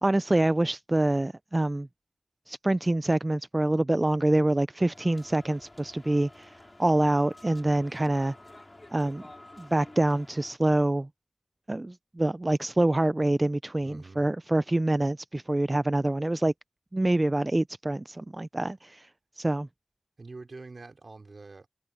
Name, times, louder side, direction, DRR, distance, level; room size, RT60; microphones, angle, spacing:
voice 1, 0.0-1.9 2.5-8.3 8.9-9.2 9.6-11.1 11.7-16.5 16.9-19.1 19.4-19.7, right 1 dB, 30° right, 0.4 m, -26 dB
sound 1, 4.9-10.6, left 1 dB, 30° left, 5.5 m, -50 dB
voice 2, 13.8-14.3 20.2-21.7, right 3 dB, 65° right, 4.9 m, -45 dB
wide cardioid pair, 70°, 0 cm